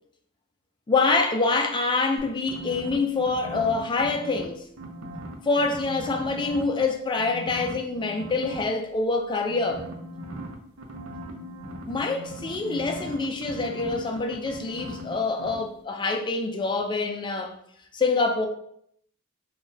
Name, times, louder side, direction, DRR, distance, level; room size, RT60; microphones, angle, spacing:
voice 1, 0.9-4.6 5.4-9.8 11.9-17.5 17.9-18.5, left 3 dB, 20° left, 0.3 m, -26 dB
sound 1, 2.2-4.4 4.8-6.8 7.2-8.6 9.5-15.1 15.4-15.6, right 1 dB, 80° right, 0.6 m, -38 dB
3.8 x 2.2 x 2.6 m
head